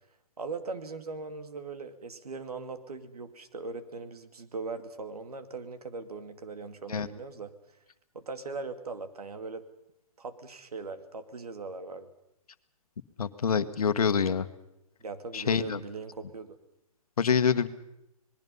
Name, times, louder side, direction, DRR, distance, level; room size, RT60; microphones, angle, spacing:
voice 1, 0.4-7.5 8.1-9.6 10.2-12.1 15.0-16.6, right 4 dB, 85° right, 9 dB, 2.4 m, -40 dB
voice 2, 13.2-14.5 15.3-15.8 17.2-17.7, left 6 dB, 75° left, 11 dB, 1.4 m, -26 dB
26.5 x 20.0 x 5.5 m, 0.86 s
hypercardioid pair, 150°, 19 cm